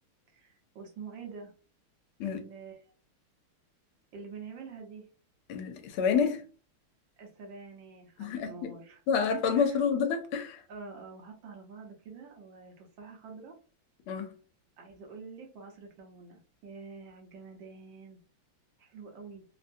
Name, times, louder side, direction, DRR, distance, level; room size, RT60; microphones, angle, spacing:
voice 1, 0.3-1.5 2.2-2.8 4.1-5.1 7.2-9.0 9.6-9.8 10.7-13.6 14.8-18.2 18.8-19.4, right 4 dB, 65° right, 1.5 m, -47 dB
voice 2, 5.5-6.4 8.2-8.7 9.1-10.6 14.1-14.3, left 6 dB, 85° left, 1.5 m, -28 dB
3.9 x 2.1 x 2.6 m
omnidirectional pair, 2.4 m